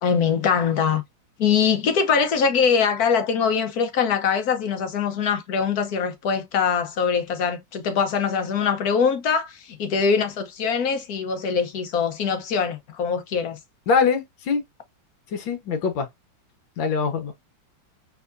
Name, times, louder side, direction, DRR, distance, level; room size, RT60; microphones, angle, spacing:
voice 1, 0.0-1.0 1.4-13.6, left 6 dB, 55° left, 1.3 m, -23 dB
voice 2, 13.9-14.6 15.3-16.1 16.8-17.3, left 5 dB, 70° left, 1.9 m, -23 dB
4.8 x 3.9 x 2.6 m
omnidirectional pair, 2.2 m